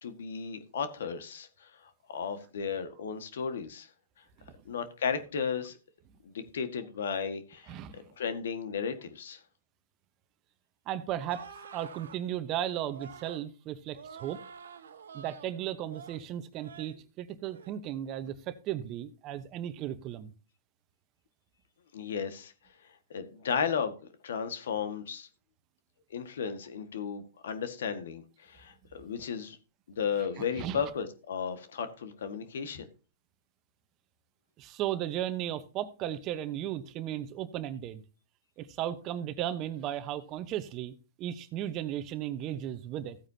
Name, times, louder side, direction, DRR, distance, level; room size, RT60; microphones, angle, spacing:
voice 1, 0.0-3.9 4.6-5.8 6.2-9.4 21.9-22.5 23.1-25.3 26.1-29.6 29.9-32.9, left 6 dB, 75° left, 1.7 m, -34 dB
voice 2, 7.7-8.1 10.9-11.5 11.7-14.4 15.1-20.3 30.4-30.8 34.6-38.0 38.6-43.2, right 11 dB, 35° right, 1.0 m, -35 dB
sound 1, 11.3-12.2 12.9-13.4 13.9-15.5 15.9-16.2 16.6-17.0 17.4-17.7, right 6 dB, 85° right, 1.6 m, -48 dB
15.0 x 9.0 x 2.8 m
hypercardioid pair, 130°, 0 cm